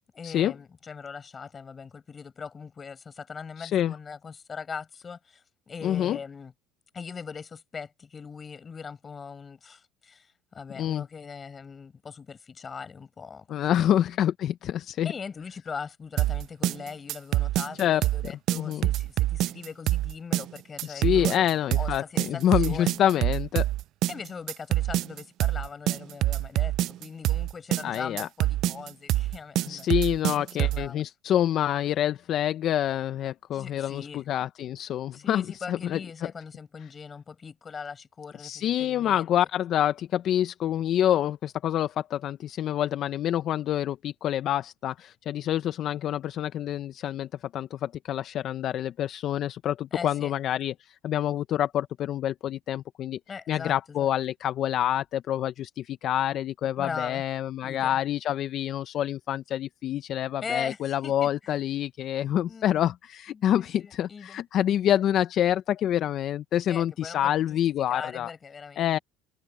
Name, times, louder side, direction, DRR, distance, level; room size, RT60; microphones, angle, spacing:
voice 1, 0.1-6.5 6.9-13.8 15.0-22.9 24.1-31.0 33.5-34.3 35.1-39.3 49.9-50.4 53.3-54.1 56.6-57.2 57.6-58.0 60.4-61.3 62.5-62.7 63.3-64.4 66.7-67.6 67.9-69.0, left 5 dB, 25° left, 7.5 m, -40 dB
voice 2, 3.6-3.9 5.8-6.2 10.8-11.0 13.5-15.1 17.8-18.9 20.8-23.7 27.8-28.3 29.7-36.0 38.4-47.3 47.5-53.2 53.5-68.3 68.8-69.0, left 11 dB, 50° left, 0.8 m, -27 dB
sound 1, 16.2-30.9, right 15 dB, 55° right, 0.5 m, -26 dB
supercardioid pair, 110°, 0 cm